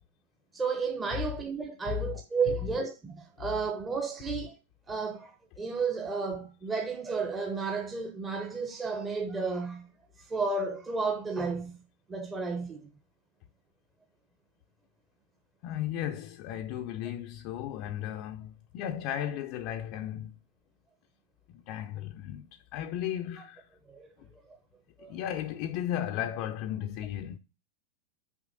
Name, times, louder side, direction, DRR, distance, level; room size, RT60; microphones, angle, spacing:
voice 1, 0.5-4.6 4.9-9.9 10.2-11.8 12.1-12.9 23.9-24.1 24.5-24.6 25.0-25.1, right 4 dB, 20° right, 1.0 m, -32 dB
voice 2, 15.6-20.3 21.5-23.7 24.2-24.3 25.0-27.4, left 11 dB, 45° left, 0.6 m, -35 dB
6.3 x 5.2 x 5.1 m
figure-of-eight pair, 90°, 0 cm